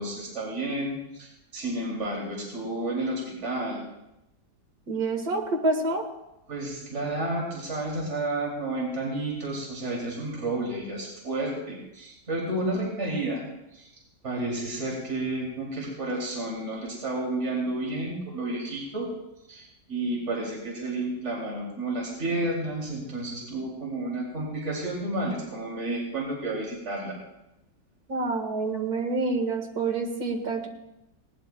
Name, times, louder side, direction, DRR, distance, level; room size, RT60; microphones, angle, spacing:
voice 1, 0.0-3.8 6.5-13.4 13.7-13.9 14.2-19.1 19.5-27.2, right 2 dB, 40° right, -3 dB, 3.0 m, -31 dB
voice 2, 4.9-6.1 28.1-30.7, right 3 dB, 60° right, 3 dB, 2.2 m, -27 dB
20.5 x 18.5 x 2.2 m, 0.91 s
omnidirectional pair, 1.8 m